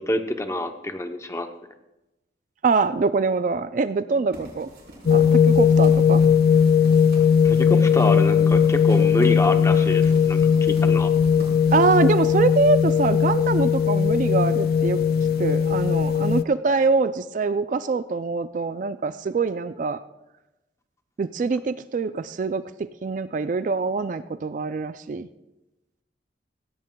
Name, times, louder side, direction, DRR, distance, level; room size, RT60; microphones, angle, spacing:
voice 1, 0.0-1.5 7.4-11.1, left 1 dB, 15° left, 6 dB, 0.7 m, -26 dB
voice 2, 2.6-4.7 5.1-6.2 11.7-15.0 15.4-20.0 21.2-25.3, right 4 dB, 45° right, 13 dB, 0.3 m, -24 dB
sound 1, 4.3-13.8, right 1 dB, 65° right, 5.1 m, -45 dB
sound 2, 5.1-16.4, left 7 dB, 55° left, 0.3 m, -18 dB
16.5 x 16.0 x 2.3 m, 0.97 s
head